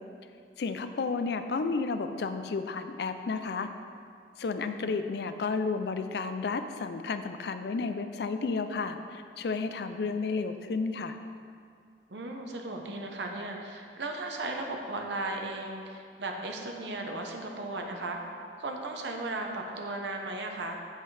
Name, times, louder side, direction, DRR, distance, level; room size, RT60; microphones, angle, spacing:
voice 1, 0.6-3.7 4.4-11.2, left 4 dB, 60° left, 8 dB, 0.4 m, -32 dB
voice 2, 4.6-4.9 12.1-18.2 18.6-20.8, right 2 dB, 75° right, 2 dB, 0.9 m, -36 dB
8.1 x 7.4 x 3.3 m, 2.3 s
head